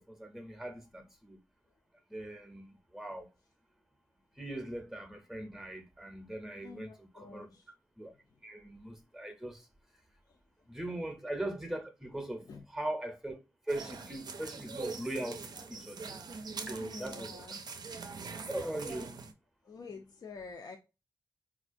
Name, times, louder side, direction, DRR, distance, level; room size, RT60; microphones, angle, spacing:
voice 1, 0.0-1.4 2.1-3.3 4.4-7.6 8.0-8.1 8.4-9.7 10.7-13.4 13.6-16.1 16.6-17.5 18.5-19.2, right 1 dB, 5° right, 0.6 m, -40 dB
voice 2, 6.6-7.7 10.3-10.4 12.5-12.6 16.8-17.6 19.6-20.8, left 4 dB, 60° left, 0.4 m, -48 dB
sound 1, 13.7-19.3, right 4 dB, 65° right, 0.5 m, -43 dB
4.1 x 2.4 x 2.5 m
wide cardioid pair, 90°, 7 cm